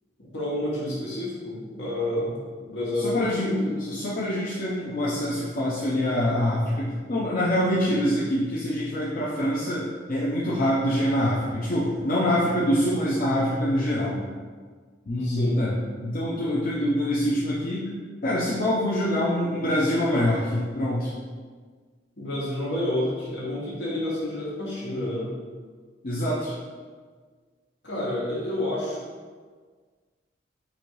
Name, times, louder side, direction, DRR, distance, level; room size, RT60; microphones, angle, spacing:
voice 1, 0.3-3.6 15.2-15.6 22.2-25.3 27.8-29.0, left 1 dB, 75° left, -6 dB, 1.4 m, -29 dB
voice 2, 3.0-14.2 15.1-17.9 18.2-21.1 26.0-26.6, equal, 50° left, -7 dB, 0.6 m, -25 dB
4.3 x 2.7 x 4.6 m, 1.5 s
head